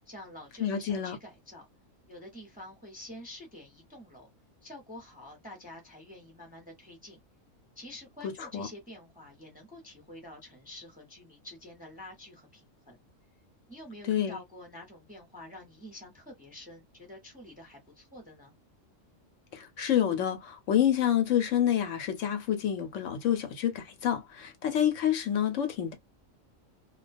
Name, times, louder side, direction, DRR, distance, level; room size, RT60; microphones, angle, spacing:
voice 1, 0.1-1.7 2.1-4.3 4.6-7.2 7.8-13.0 13.7-18.5, left 1 dB, 10° right, 0.6 m, -48 dB
voice 2, 0.6-1.2 8.2-8.7 14.0-14.4 19.5-25.9, left 10 dB, 75° left, 1.0 m, -28 dB
2.3 x 2.2 x 2.5 m
omnidirectional pair, 1.4 m